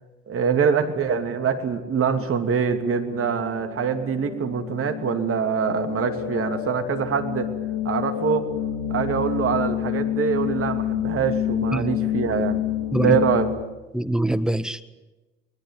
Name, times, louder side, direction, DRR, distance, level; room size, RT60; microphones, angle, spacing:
voice 1, 0.3-7.5 7.8-8.5 8.9-12.6 13.0-13.5, right 6 dB, 50° right, 7 dB, 2.8 m, -24 dB
sound 1, 1.7-13.6, left 11 dB, 70° left, 2.5 m, -29 dB
voice 2, 13.9-14.8, right 1 dB, ahead, 12 dB, 1.5 m, -23 dB
24.0 x 21.0 x 7.7 m, 1.1 s
hypercardioid pair, 55°, 30 cm